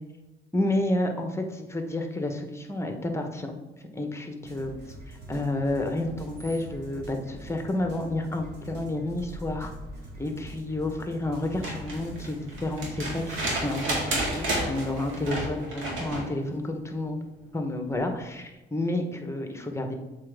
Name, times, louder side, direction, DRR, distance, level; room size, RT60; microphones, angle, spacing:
voice 1, 0.5-3.6 3.9-4.7 5.1-9.7 10.2-17.3 17.5-19.9, left 1 dB, 15° left, 4 dB, 1.0 m, -30 dB
sound 1, 4.4-15.2, right 1 dB, 55° right, 2.0 m, -44 dB
sound 2, 11.4-16.3 17.9-18.0, right 1 dB, 80° right, 2.0 m, -31 dB
7.5 x 4.1 x 3.4 m, 1.1 s
cardioid pair, 90°, 20 cm